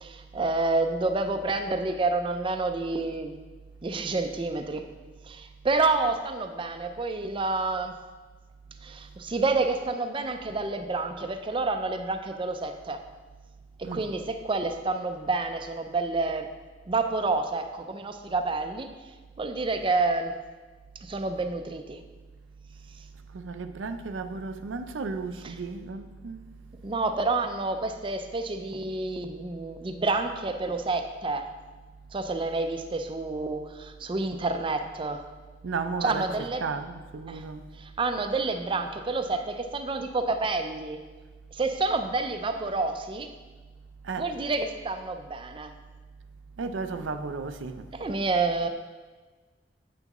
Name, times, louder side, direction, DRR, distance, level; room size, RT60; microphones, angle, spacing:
voice 1, 0.0-3.3 3.8-4.8 5.3-7.9 8.8-13.0 13.8-16.5 16.9-18.9 19.4-20.3 21.0-22.0 25.4-25.6 26.8-31.5 32.1-35.2 36.0-36.7 37.3-37.4 37.8-41.0 41.5-43.3 44.2-45.7 47.9-48.7, right 3 dB, 30° right, 0.4 m, -29 dB
voice 2, 23.3-26.4 35.6-36.2 36.6-37.6 44.0-44.3 46.6-47.8, right 4 dB, 85° right, 0.5 m, -34 dB
9.0 x 5.8 x 3.0 m
head